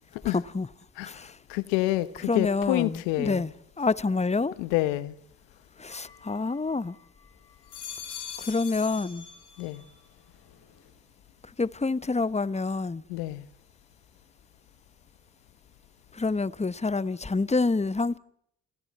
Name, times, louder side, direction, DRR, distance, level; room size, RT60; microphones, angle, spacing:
voice 1, 0.2-0.7 1.0-1.4 2.2-4.6 5.8-7.0 8.4-9.3 11.6-13.0 16.1-18.2, left 3 dB, 15° left, 1.1 m, -27 dB
voice 2, 1.5-3.4 4.6-5.1 9.6-9.8 13.1-13.4, left 17 dB, 90° left, 1.1 m, -27 dB
sound 1, 5.9-7.0 7.5-9.9 10.3-10.9, left 7 dB, 70° left, 6.8 m, -43 dB
29.5 x 27.5 x 4.2 m
hypercardioid pair, 45°, 42 cm